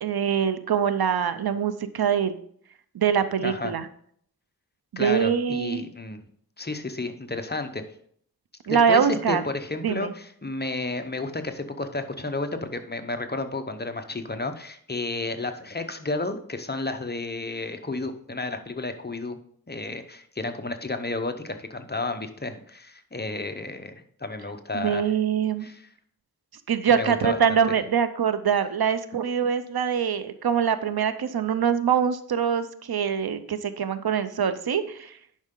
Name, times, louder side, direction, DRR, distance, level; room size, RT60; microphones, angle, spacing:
voice 1, 0.0-2.4 2.9-3.9 4.9-5.9 8.7-9.4 9.8-10.1 24.7-25.7 26.7-35.2, right 7 dB, 85° right, 12 dB, 0.6 m, -24 dB
voice 2, 3.4-3.7 5.0-6.2 6.6-7.8 8.7-19.4 19.7-25.1 25.6-25.8 26.9-27.4, left 2 dB, 25° left, 7 dB, 0.8 m, -32 dB
10.5 x 5.5 x 3.8 m, 0.63 s
wide cardioid pair, 75°, 36 cm